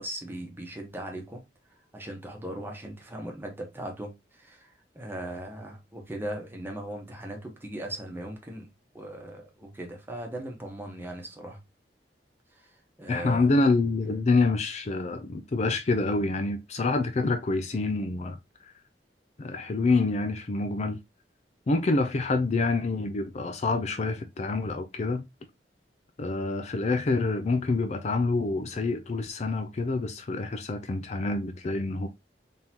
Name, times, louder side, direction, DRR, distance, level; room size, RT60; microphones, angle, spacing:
voice 1, 0.0-1.4 1.9-8.7 8.9-11.6 12.5-12.7 13.0-13.5, right 1 dB, 15° right, 1.2 m, -38 dB
voice 2, 13.1-18.4 18.6-18.7 19.4-21.0 21.7-25.2 26.2-32.1, left 3 dB, 40° left, 0.4 m, -27 dB
3.9 x 3.6 x 2.9 m
head